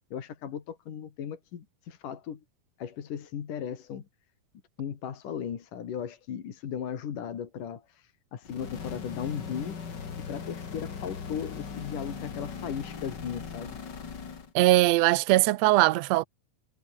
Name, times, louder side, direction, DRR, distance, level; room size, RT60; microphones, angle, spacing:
voice 1, 0.1-2.4 2.8-4.0 4.8-9.8 10.3-13.8, left 8 dB, 75° left, 4.0 m, -37 dB
sound 1, 8.4-14.5, left 6 dB, 35° left, 2.3 m, -39 dB
voice 2, 14.5-16.2, right 18 dB, 75° right, 1.6 m, -21 dB
omnidirectional pair, 3.8 m